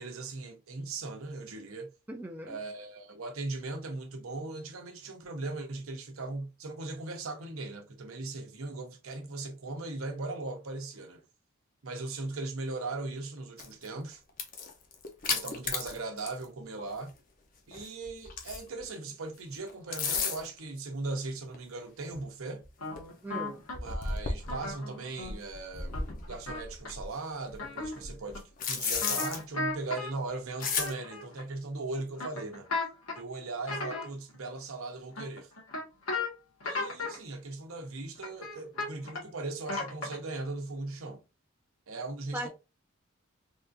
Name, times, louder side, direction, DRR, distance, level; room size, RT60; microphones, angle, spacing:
voice 1, 0.0-1.9 2.5-11.2 11.8-14.2 15.3-17.1 17.7-22.6 23.8-26.0 26.3-32.7 33.2-35.5 36.6-41.2 41.9-42.5, right 3 dB, 75° right, 0.8 m, -38 dB
voice 2, 2.1-2.6 23.2-23.6 42.3-42.5, right 1 dB, 10° right, 0.3 m, -38 dB
sound 1, 13.6-13.9 14.3-16.5 16.8-16.9 17.7-18.8 19.7-20.6 21.5-21.6 22.1-22.2 22.6-22.7 22.9-23.0 23.7-24.7 25.2-27.1 27.5-29.4 30.6-30.9, left 5 dB, 40° left, 0.6 m, -34 dB
sound 2, 22.8-23.7 24.4-25.4 25.9-26.9 27.6-28.0 28.3-28.4 29.0-30.1 30.6-31.4 32.2-33.2 33.6-34.4 35.2-36.3 36.6-37.2 38.2-39.3 39.7-40.3, left 3 dB, 85° left, 1.5 m, -35 dB
3.6 x 2.5 x 2.5 m
head